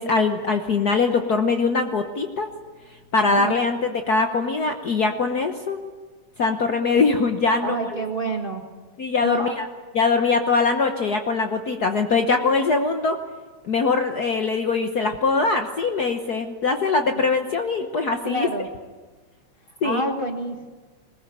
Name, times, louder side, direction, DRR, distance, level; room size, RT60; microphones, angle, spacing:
voice 1, 0.0-2.5 3.1-5.8 6.4-7.9 9.0-9.6 9.9-13.2 13.6-18.5 19.8-20.0, left 4 dB, 75° left, 5 dB, 0.8 m, -22 dB
voice 2, 3.2-3.5 6.8-7.0 7.6-8.6 9.2-9.6 17.1-17.2 18.2-18.7 19.8-20.7, right 2 dB, 40° right, 3 dB, 0.7 m, -28 dB
21.0 x 20.5 x 9.1 m, 1.4 s
omnidirectional pair, 3.3 m